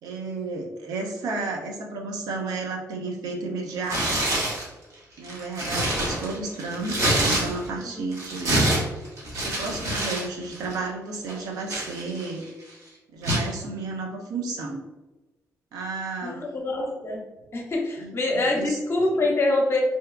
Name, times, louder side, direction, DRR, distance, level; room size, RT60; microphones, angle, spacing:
voice 1, 0.0-4.1 5.2-8.7 9.3-12.4 13.1-14.8 15.7-16.5 18.0-18.8, right 3 dB, 85° right, 1 dB, 0.5 m, -32 dB
Tearing, 3.8-4.7 5.2-7.8 8.1-10.3 10.5-10.8 11.3-12.4 13.2-13.5, right 1 dB, 50° right, 0.9 m, -26 dB
voice 2, 16.2-17.2 17.5-19.8, left 2 dB, 45° left, 0 dB, 0.7 m, -25 dB
2.7 x 2.3 x 2.2 m, 1.1 s
cardioid pair, 85°, 6 cm